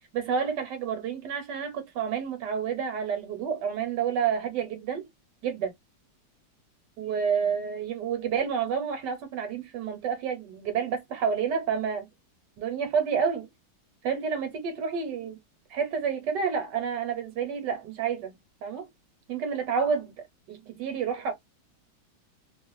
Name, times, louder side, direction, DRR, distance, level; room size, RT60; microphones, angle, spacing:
voice 1, 0.1-5.1 5.4-5.7 7.0-12.1 12.6-13.5 14.0-15.4 15.7-18.3 18.6-18.9 19.3-20.1 20.5-21.3, right 7 dB, 65° right, 1.4 m, -29 dB
3.1 x 2.4 x 2.4 m
omnidirectional pair, 2.1 m